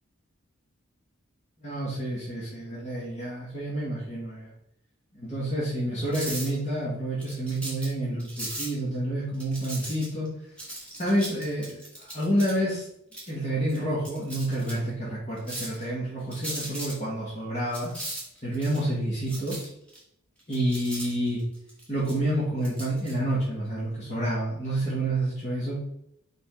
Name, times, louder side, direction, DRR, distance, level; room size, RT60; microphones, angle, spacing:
voice 1, 1.6-4.5 5.1-10.3 11.0-12.9 13.3-17.9 18.4-19.6 20.5-21.4 21.9-25.8, right 1 dB, 30° left, -8 dB, 2.0 m, -29 dB
sound 1, 6.1-6.6 7.2-7.9 8.2-8.7 9.3-10.3 10.6-12.5 13.1-13.3 13.7-13.8 14.0-14.7 15.4-15.8 16.3-16.9 17.7-18.8 19.3-20.0 20.4-22.2 22.6-23.1, right 1 dB, 5° left, 1.9 m, -37 dB
5.3 x 5.3 x 3.9 m, 0.77 s
head